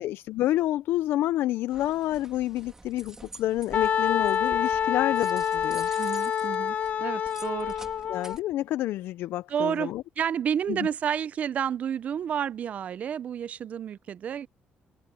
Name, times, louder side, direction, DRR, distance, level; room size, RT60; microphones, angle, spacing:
voice 1, 0.0-5.9 8.1-10.0 10.7-10.9, left 14 dB, 90° left, 0.4 m, -28 dB
sound 1, 1.7-8.4, right 2 dB, 15° right, 2.4 m, -48 dB
Wind instrument woodwind instrument, 3.7-8.4, left 8 dB, 45° left, 0.8 m, -27 dB
voice 2, 6.0-7.7 9.5-14.5, right 8 dB, 40° right, 0.4 m, -30 dB
open air
cardioid pair, 170°, 4 cm